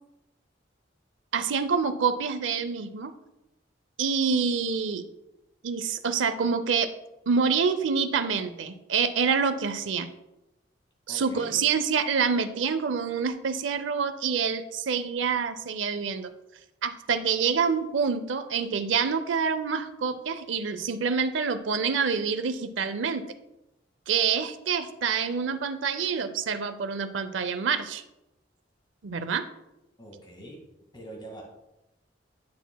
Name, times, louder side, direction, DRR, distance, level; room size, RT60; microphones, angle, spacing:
voice 1, 1.3-3.1 4.0-5.0 5.6-6.9 7.3-10.1 11.1-16.3 16.8-23.2 24.1-28.0 29.0-29.4, right 6 dB, 85° right, 10 dB, 0.6 m, -27 dB
voice 2, 11.1-11.7 30.0-30.6 30.9-31.4, right 1 dB, 25° left, -1 dB, 2.0 m, -43 dB
10.5 x 6.0 x 2.3 m, 0.93 s
head